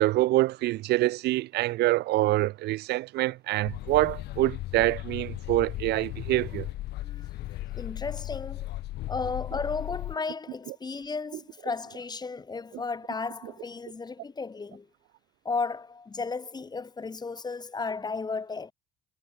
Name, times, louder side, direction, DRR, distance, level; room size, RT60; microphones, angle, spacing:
voice 1, 0.0-6.7, right 17 dB, 75° right, 1.0 m, -25 dB
sound 1, 3.6-10.2, left 16 dB, 80° left, 2.9 m, -36 dB
voice 2, 7.0-8.7 9.1-14.9 15.4-18.7, left 4 dB, 25° left, 4.6 m, -34 dB
cardioid pair, 110°, 17 cm